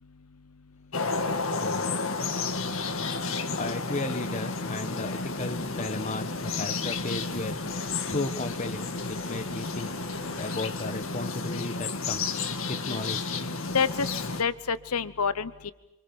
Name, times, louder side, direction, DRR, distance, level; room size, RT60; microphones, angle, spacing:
sound 1, 0.9-14.4, left 3 dB, 60° left, 1.8 m, -32 dB
voice 1, 1.5-2.0 3.5-7.6 8.0-9.9 10.4-12.3 12.7-13.4, left 2 dB, 35° left, 10 dB, 1.3 m, -35 dB
sound 2, 5.0-10.7, right 1 dB, 30° right, 4.6 m, -52 dB
voice 2, 13.7-14.1 14.4-15.7, left 5 dB, 90° left, 16 dB, 0.9 m, -27 dB
29.0 x 25.5 x 7.2 m, 0.95 s
head